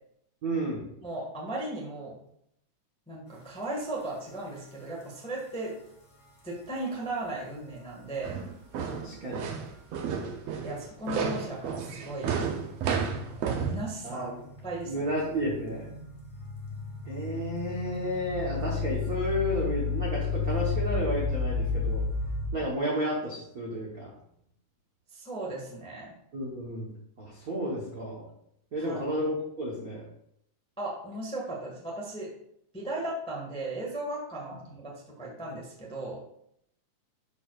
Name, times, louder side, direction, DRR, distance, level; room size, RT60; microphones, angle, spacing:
voice 1, 0.4-0.8 9.0-9.5 14.0-14.4 14.9-15.9 17.0-22.0 22.5-24.1 26.3-26.9 27.2-28.2 28.7-30.0, equal, 85° right, -4 dB, 0.8 m, -32 dB
voice 2, 1.0-2.2 3.1-5.7 6.4-8.3 10.6-12.3 12.9-14.3 14.6-14.9 25.1-26.1 28.8-29.0 30.8-32.3 32.7-36.2, right 2 dB, 5° left, -3 dB, 0.4 m, -36 dB
sound 1, 3.8-3.9 4.5-4.6 5.5-5.6 8.7-9.1 10.7-10.8 11.5-22.5, left 4 dB, 35° left, 1.4 m, -33 dB
sound 2, 8.2-13.8, right 6 dB, 70° right, 1.6 m, -32 dB
11.5 x 4.7 x 2.5 m, 0.74 s
omnidirectional pair, 3.7 m